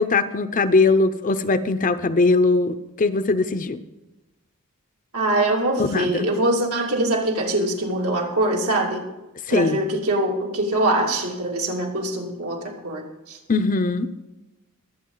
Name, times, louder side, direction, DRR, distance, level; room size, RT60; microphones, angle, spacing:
voice 1, 0.0-3.8 5.8-6.3 9.5-9.8 13.5-14.1, left 3 dB, 35° left, 11 dB, 0.7 m, -20 dB
voice 2, 5.1-9.1 9.5-13.4, right 1 dB, 75° right, -1 dB, 2.9 m, -23 dB
23.0 x 8.2 x 3.9 m, 1.0 s
head